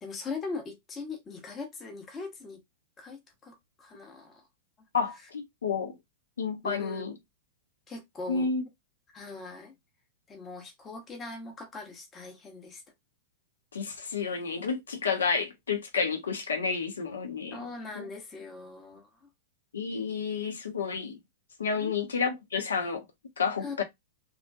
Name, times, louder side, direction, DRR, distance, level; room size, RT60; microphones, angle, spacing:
voice 1, 0.0-2.6 3.0-4.4 6.6-7.0 7.9-8.5 9.1-9.7 10.3-12.8 17.5-19.1 21.7-22.0 23.6-23.8, left 3 dB, 20° left, 0.8 m, -40 dB
voice 2, 4.9-6.0 6.4-7.1 8.3-8.6 13.7-17.6 17.9-18.1 19.7-21.2 21.6-23.0 23.4-23.8, left 5 dB, 70° left, 0.8 m, -30 dB
3.0 x 2.4 x 2.2 m
figure-of-eight pair, 100°, 0 cm